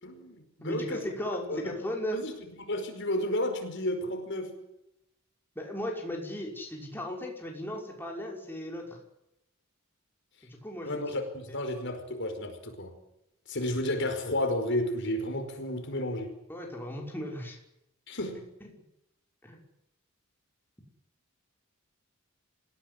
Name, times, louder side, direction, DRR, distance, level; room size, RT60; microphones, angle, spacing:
voice 1, 0.0-1.1 1.5-1.7 2.1-2.3 2.6-4.6 10.8-12.9 13.5-16.3 18.1-18.4, left 1 dB, 60° left, 6 dB, 5.2 m, -32 dB
voice 2, 0.6-2.2 5.6-9.0 10.4-11.0 11.5-11.6 16.5-17.6 18.6-18.8 19.4-19.6, left 1 dB, 10° left, -1 dB, 6.0 m, -36 dB
27.0 x 17.0 x 9.8 m, 0.85 s
head